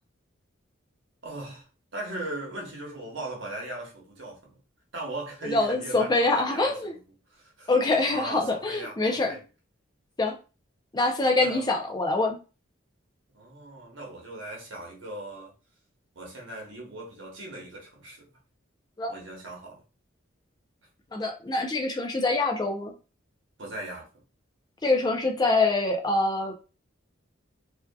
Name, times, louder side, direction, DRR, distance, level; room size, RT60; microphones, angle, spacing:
voice 1, 1.2-1.6 1.9-4.5 4.9-7.0 7.3-7.7 8.1-9.4 11.4-11.6 13.3-15.5 16.1-18.3 19.1-19.8 23.6-24.2, right 2 dB, 70° right, 1.0 m, -38 dB
voice 2, 5.4-6.9 7.7-9.4 10.2-10.3 10.9-12.4 19.0-19.1 21.1-22.9 24.8-26.5, left 2 dB, 20° left, 0.4 m, -25 dB
2.6 x 2.4 x 2.2 m
head